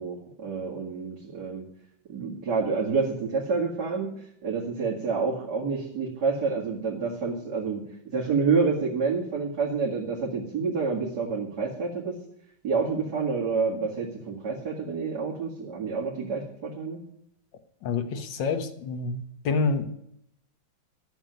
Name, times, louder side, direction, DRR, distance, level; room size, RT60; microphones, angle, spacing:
voice 1, 0.0-1.6 2.1-7.9 8.1-12.2 12.6-17.0, right 4 dB, 60° right, 2.7 m, -28 dB
voice 2, 17.8-19.9, left 4 dB, 75° left, 1.9 m, -28 dB
12.5 x 7.3 x 9.2 m
omnidirectional pair, 2.0 m